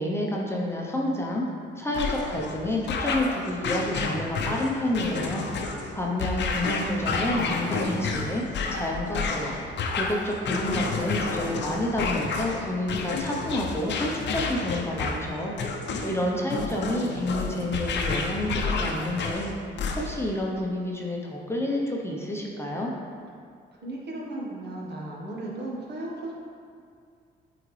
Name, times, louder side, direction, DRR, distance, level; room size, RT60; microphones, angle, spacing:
voice 1, 0.0-1.5 1.8-5.5 5.9-8.4 8.7-9.6 9.9-15.5 16.1-19.5 20.0-22.9, left 1 dB, 10° left, -2 dB, 0.8 m, -29 dB
sound 1, 1.9-20.3, left 4 dB, 60° left, 0.7 m, -30 dB
voice 2, 15.9-17.0 23.7-26.3, right 1 dB, 60° right, -3 dB, 1.5 m, -36 dB
8.5 x 3.9 x 3.3 m, 2.2 s
cardioid pair, 90°, 20 cm